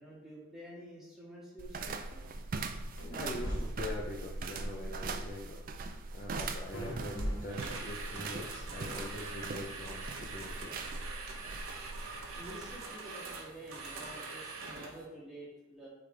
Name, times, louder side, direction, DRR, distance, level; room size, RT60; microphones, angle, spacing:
voice 1, 0.0-2.2 12.4-15.9, right 1 dB, ahead, -7 dB, 1.7 m, -49 dB
sound 1, 1.6-12.8, right 3 dB, 40° right, 0.4 m, -41 dB
sound 2, 3.0-3.6 6.7-7.9, equal, 70° left, 1.6 m, -38 dB
voice 2, 3.2-5.6 6.1-10.9, left 2 dB, 40° left, -2 dB, 0.6 m, -43 dB
sound 3, 7.5-15.1, right 3 dB, 85° right, 0.9 m, -44 dB
8.5 x 3.4 x 3.3 m, 1.0 s
head